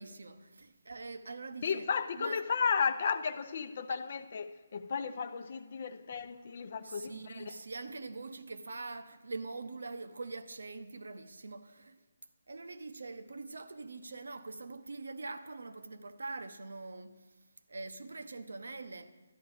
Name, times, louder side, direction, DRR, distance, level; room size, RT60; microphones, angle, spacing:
voice 1, 0.0-1.9 2.2-2.4 3.9-4.0 6.8-12.0 12.5-17.2 17.7-19.1, right 3 dB, 85° right, 0.8 m, -43 dB
voice 2, 1.6-7.5, left 6 dB, 50° left, 0.6 m, -34 dB
12.0 x 10.5 x 4.9 m
hypercardioid pair, 160°, 0 cm